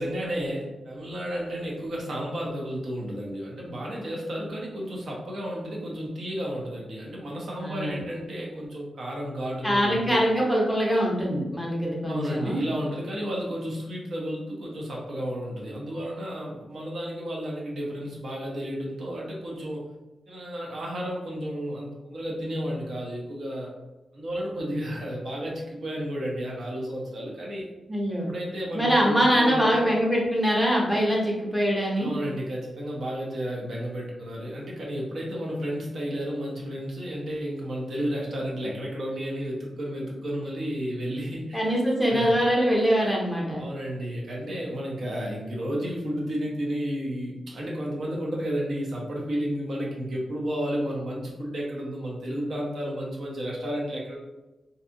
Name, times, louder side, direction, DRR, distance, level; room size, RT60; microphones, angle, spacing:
voice 1, 0.0-10.2 12.1-19.8 20.3-23.7 24.1-27.7 28.3-29.9 32.0-41.8 42.0-42.4 43.6-54.2, equal, 60° right, -3 dB, 0.7 m, -32 dB
voice 2, 7.6-8.0 9.6-12.6 27.9-28.3 28.7-32.1 41.5-43.6, equal, 5° right, -4 dB, 0.7 m, -23 dB
2.6 x 2.3 x 2.5 m, 1.1 s
wide cardioid pair, 155°, 0 cm